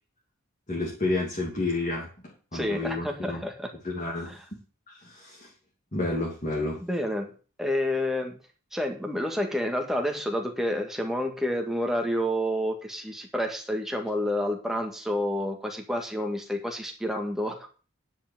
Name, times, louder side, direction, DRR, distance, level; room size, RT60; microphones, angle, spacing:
voice 1, 0.7-3.4 3.8-4.3 4.9-5.5 5.9-6.8, left 2 dB, 35° left, -3 dB, 2.6 m, -30 dB
voice 2, 2.5-3.7 4.3-4.4 6.8-7.3 7.6-8.4 8.7-17.8, left 1 dB, ahead, 2 dB, 1.8 m, -29 dB
10.0 x 5.8 x 7.3 m, 0.37 s
head